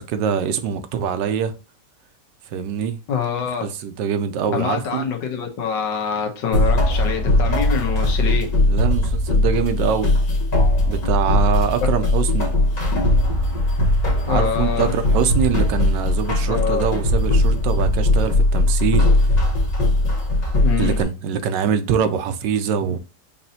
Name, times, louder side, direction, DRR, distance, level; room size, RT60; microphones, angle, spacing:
voice 1, 0.0-1.5 2.5-3.0 3.6-5.0 8.7-10.1 10.9-12.5 14.3-19.3 20.8-23.0, right 7 dB, 80° right, 1.3 m, -24 dB
voice 2, 3.1-3.7 4.5-8.5 14.3-14.9 16.5-16.9 20.6-21.0, left 7 dB, 85° left, 1.7 m, -25 dB
sound 1, 6.5-21.0, left 1 dB, 50° left, 1.7 m, -19 dB
5.2 x 2.9 x 2.7 m
omnidirectional pair, 1.9 m